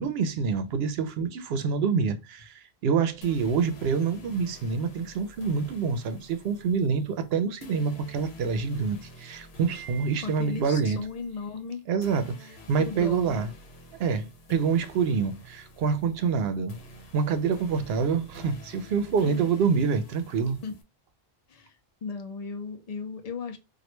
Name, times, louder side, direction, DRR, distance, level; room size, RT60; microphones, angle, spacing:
voice 1, 0.0-11.1 11.9-13.5 14.0-16.8 17.1-20.6, right 5 dB, 75° right, 0.8 m, -27 dB
sound 1, 3.2-20.8, left 1 dB, 80° left, 1.0 m, -49 dB
Wind chime, 9.7-11.1, right 9 dB, 20° right, 0.9 m, -49 dB
voice 2, 10.2-11.8 12.8-13.5 19.2-19.5 20.6-20.8 21.5-21.8 22.0-23.6, left 5 dB, 45° left, 0.5 m, -36 dB
3.0 x 2.4 x 3.1 m
omnidirectional pair, 1.0 m